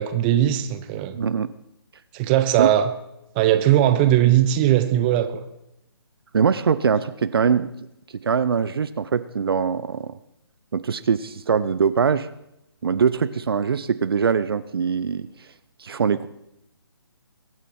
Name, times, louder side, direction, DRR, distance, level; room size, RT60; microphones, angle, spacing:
voice 1, 0.0-1.2 2.1-2.9 3.3-5.4, right 12 dB, 20° right, 9 dB, 0.9 m, -19 dB
voice 2, 1.1-1.5 2.6-2.7 6.3-7.7 8.2-10.1 10.7-12.3 12.8-15.3 15.8-16.3, right 6 dB, 65° right, 14 dB, 0.7 m, -22 dB
23.0 x 9.0 x 4.4 m, 0.82 s
hypercardioid pair, 150°, 14 cm